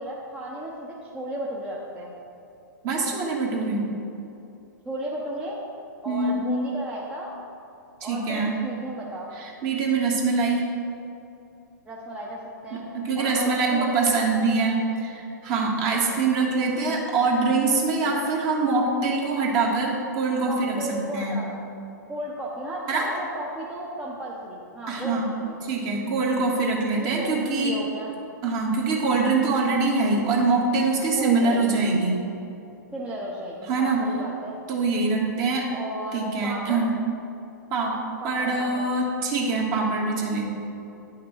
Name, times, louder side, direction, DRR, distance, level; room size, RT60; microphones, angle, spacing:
voice 1, 0.0-2.1 4.8-5.6 6.0-7.3 8.0-9.3 11.9-12.9 13.1-14.3 15.8-16.0 20.4-21.5 22.1-25.6 27.0-28.1 31.2-31.7 32.9-34.5 35.7-36.9 38.2-38.9, right 1 dB, 10° right, -4 dB, 0.8 m, -34 dB
voice 2, 2.8-3.8 6.0-6.5 8.0-8.5 9.4-10.6 12.7-21.4 22.9-23.1 24.9-25.3 25.6-27.7 28.4-32.2 33.7-34.0 34.7-35.6 36.1-37.0 37.7-37.9 38.2-40.4, right 3 dB, 35° right, -1 dB, 1.6 m, -24 dB
10.5 x 5.8 x 3.1 m, 2.8 s
hypercardioid pair, 120°, 10 cm